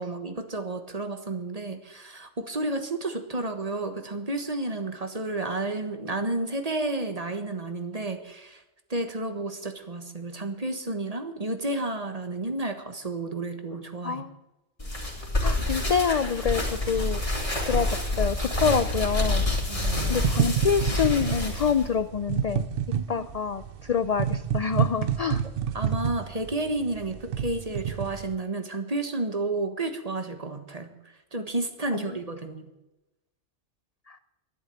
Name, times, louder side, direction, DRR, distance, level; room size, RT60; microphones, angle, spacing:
voice 1, 0.0-8.6 8.9-14.2 19.7-20.6 22.9-23.3 25.7-30.9 31.3-32.6, right 2 dB, 35° right, 7 dB, 1.5 m, -31 dB
sound 1, 14.8-21.9, left 1 dB, 30° left, 3.2 m, -27 dB
voice 2, 15.4-17.2 17.7-19.4 20.1-22.7 23.1-23.6 23.9-25.4 31.9-32.0, left 6 dB, 50° left, 12 dB, 0.5 m, -26 dB
sound 2, 19.8-28.3, right 9 dB, 60° right, 0.8 m, -29 dB
12.0 x 11.0 x 7.8 m, 0.98 s
omnidirectional pair, 1.2 m